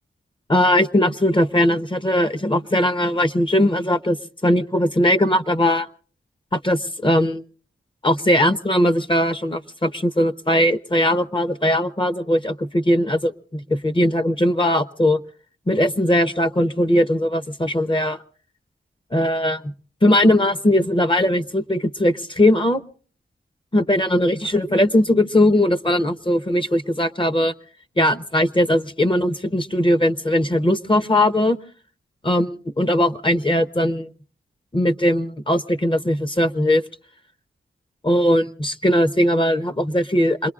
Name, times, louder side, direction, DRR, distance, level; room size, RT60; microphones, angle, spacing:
voice 1, 0.5-5.9 6.5-7.4 8.0-15.2 15.7-18.2 19.1-19.7 20.0-22.8 23.7-27.5 28.0-31.6 32.2-34.1 34.7-36.8 38.0-40.5, left 1 dB, 25° left, 10 dB, 0.8 m, -19 dB
27.5 x 21.5 x 2.4 m, 0.43 s
wide cardioid pair, 65°, 20 cm